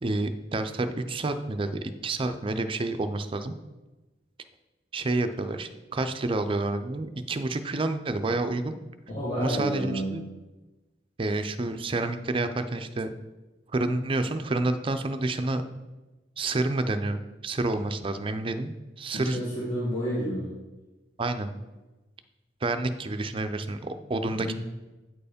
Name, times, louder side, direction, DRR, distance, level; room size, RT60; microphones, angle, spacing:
voice 1, 0.0-3.5 4.9-8.8 9.4-10.2 11.2-13.1 13.7-15.6 16.4-19.4 21.2-21.5 22.6-24.5, right 2 dB, 30° right, 9 dB, 0.5 m, -29 dB
voice 2, 9.1-10.1 19.1-20.5 24.3-24.5, equal, 35° left, -8 dB, 1.8 m, -30 dB
8.9 x 4.7 x 5.1 m, 1.1 s
head